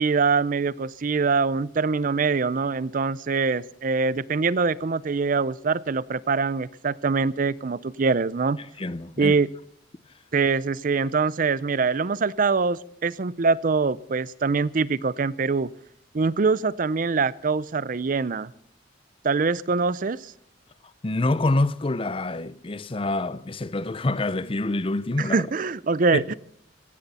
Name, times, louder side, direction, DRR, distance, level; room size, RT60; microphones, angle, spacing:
voice 1, 0.0-8.6 9.2-9.5 10.3-15.7 16.1-18.5 19.2-20.3 25.2-26.3, right 4 dB, 45° right, 0.5 m, -24 dB
voice 2, 8.8-9.4 21.0-25.4, left 2 dB, 30° left, 0.6 m, -26 dB
17.0 x 16.0 x 4.2 m
head